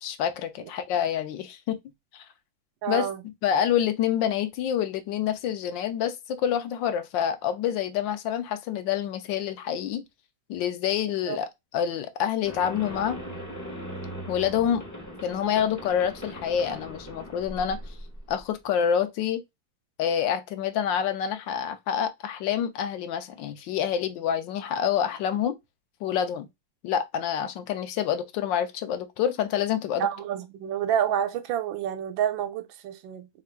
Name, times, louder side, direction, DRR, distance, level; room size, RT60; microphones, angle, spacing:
voice 1, 0.0-1.8 2.1-2.2 2.9-10.0 10.5-13.2 14.3-14.8 15.2-17.8 18.3-19.4 20.0-25.6 26.0-26.5 26.8-30.1, left 9 dB, 75° left, 1.3 m, -27 dB
voice 2, 2.8-3.2 11.3-11.4 30.0-33.3, right 9 dB, 90° right, 1.4 m, -28 dB
sound 1, 12.5-18.5, equal, 25° left, 0.4 m, -39 dB
3.6 x 2.5 x 4.4 m
omnidirectional pair, 2.1 m